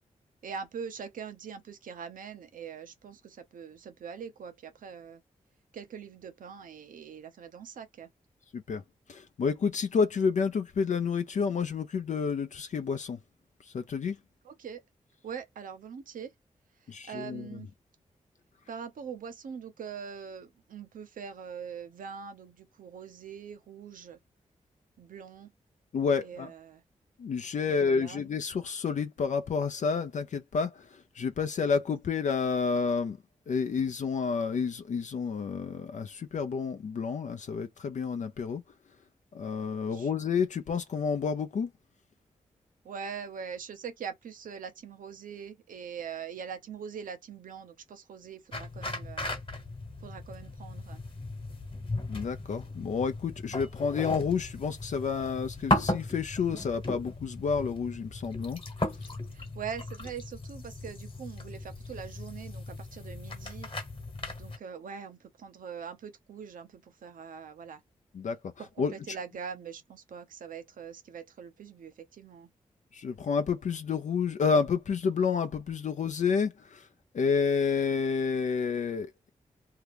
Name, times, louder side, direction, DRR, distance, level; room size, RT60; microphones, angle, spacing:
voice 1, 0.4-5.2 5.7-8.1 14.4-14.8 15.2-16.3 16.8-17.7 18.7-24.2 25.0-25.5 26.2-26.8 27.7-28.2 39.9-40.1 42.8-49.3 50.0-51.0 59.0-63.7 64.4-67.8 68.6-72.5, right 7 dB, 80° right, 0.8 m, -42 dB
voice 2, 9.1-13.2 13.6-14.2 16.9-17.5 25.9-26.5 27.2-33.2 33.5-38.6 39.3-41.7 52.1-58.6 68.1-68.4 68.8-69.2 72.9-76.9 77.1-79.3, left 5 dB, 60° left, 0.5 m, -30 dB
sound 1, 48.5-64.6, left 2 dB, 40° left, 1.2 m, -36 dB
2.8 x 2.3 x 3.3 m
cardioid pair, 50°, 14 cm